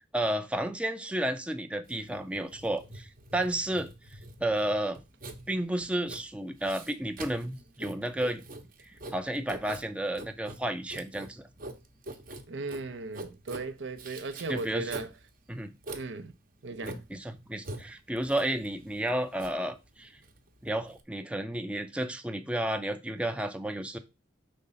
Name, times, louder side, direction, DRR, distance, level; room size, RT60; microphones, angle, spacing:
voice 1, 0.0-3.9 4.4-5.0 5.5-8.4 8.8-11.4 14.5-14.9 15.5-15.7 16.8-20.2 20.6-24.0, right 1 dB, 5° right, 0.5 m, -32 dB
Writing, 1.9-21.0, right 2 dB, 50° right, 0.9 m, -45 dB
voice 2, 12.5-15.1 15.9-16.3 16.6-17.0, right 3 dB, 75° right, 0.6 m, -37 dB
5.2 x 3.8 x 5.5 m
head